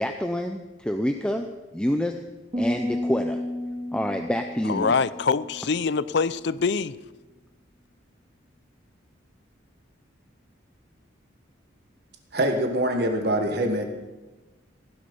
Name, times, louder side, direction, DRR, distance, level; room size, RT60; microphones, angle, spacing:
voice 1, 0.0-1.5 1.7-2.2 2.5-3.4 3.9-5.0, equal, 5° left, 5 dB, 0.6 m, -27 dB
sound 1, 2.5-5.9, left 1 dB, 25° right, 2.8 m, -31 dB
voice 2, 4.7-7.0, left 5 dB, 60° left, 17 dB, 0.5 m, -24 dB
voice 3, 12.3-13.8, right 1 dB, 55° right, 4 dB, 1.6 m, -24 dB
16.5 x 12.0 x 5.4 m, 1.2 s
head